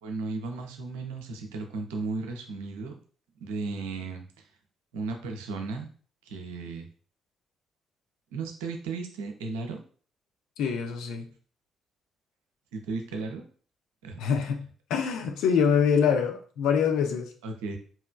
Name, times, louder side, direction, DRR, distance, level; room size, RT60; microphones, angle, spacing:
voice 1, 0.0-3.0 3.4-4.4 4.9-5.9 6.3-6.9 8.3-9.8 12.7-13.4 14.0-14.2 17.4-17.8, right 3 dB, 70° right, 3 dB, 0.6 m, -35 dB
voice 2, 10.6-11.3 14.2-14.6 14.9-17.3, left 7 dB, 60° left, 4 dB, 0.6 m, -25 dB
4.3 x 3.2 x 2.2 m, 0.43 s
figure-of-eight pair, 45°, 0 cm